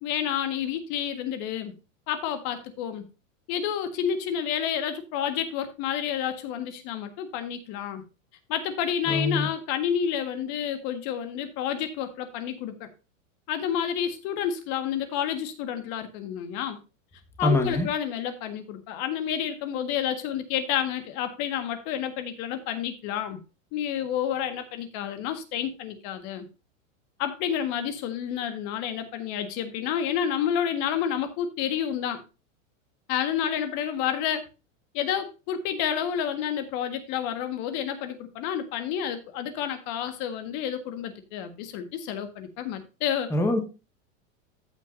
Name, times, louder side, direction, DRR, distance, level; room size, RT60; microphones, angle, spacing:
voice 1, 0.0-1.7 2.1-3.1 3.5-8.0 8.5-12.9 13.5-16.8 17.4-23.4 23.7-26.5 27.2-32.2 33.1-34.5 34.9-43.3, left 9 dB, 50° left, 9 dB, 1.6 m, -29 dB
voice 2, 9.1-9.5 17.4-17.9 43.3-43.6, left 1 dB, 5° left, 4 dB, 1.4 m, -24 dB
14.0 x 5.9 x 2.6 m, 0.29 s
hypercardioid pair, 125°, 40 cm